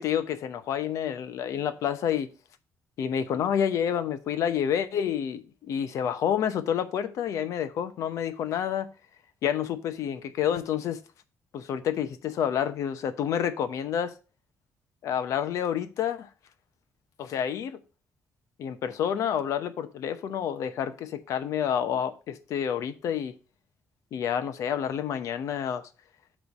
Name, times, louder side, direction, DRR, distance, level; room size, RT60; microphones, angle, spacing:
voice 1, 0.0-2.3 3.0-8.9 9.4-11.0 11.5-14.1 15.0-16.3 17.2-17.8 18.6-23.3 24.1-25.9, left 9 dB, 70° left, 0.9 m, -29 dB
8.3 x 3.3 x 6.6 m
cardioid pair, 175°, 6 cm